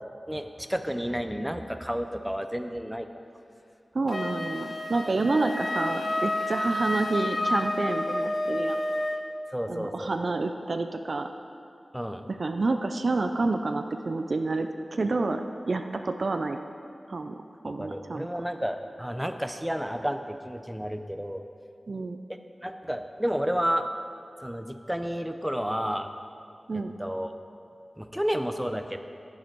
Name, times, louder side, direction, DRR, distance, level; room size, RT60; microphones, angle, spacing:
voice 1, 0.3-3.1 9.5-10.1 11.9-12.2 17.6-21.4 22.6-23.9 24.4-26.1 26.7-27.3 28.0-29.0, equal, 5° right, 7 dB, 0.6 m, -31 dB
voice 2, 3.9-8.8 9.7-11.3 12.3-16.6 17.1-18.3 21.9-22.2 26.7-27.0, right 3 dB, 60° right, 6 dB, 0.4 m, -29 dB
Wind instrument woodwind instrument, 4.1-9.3, left 1 dB, 50° left, 0.7 m, -30 dB
10.0 x 9.6 x 4.5 m, 2.5 s
wide cardioid pair, 95°, 0 cm